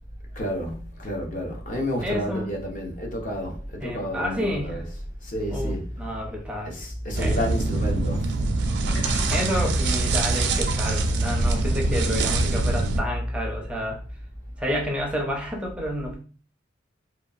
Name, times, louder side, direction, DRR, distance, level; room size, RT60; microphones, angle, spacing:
voice 1, 0.4-6.2 6.6-8.3, equal, 45° left, 0.7 m, -30 dB
voice 2, 2.0-2.5 3.8-4.8 5.5-6.7 7.2-7.4 9.3-14.0 14.6-16.2, equal, 5° right, 0.5 m, -30 dB
sound 1, 7.1-13.0, right 2 dB, 65° right, 0.4 m, -24 dB
Sink (filling or washing), 8.9-10.8 11.1-11.4 11.8-11.9, left 1 dB, 85° left, 1.0 m, -39 dB
2.8 x 2.2 x 2.4 m
head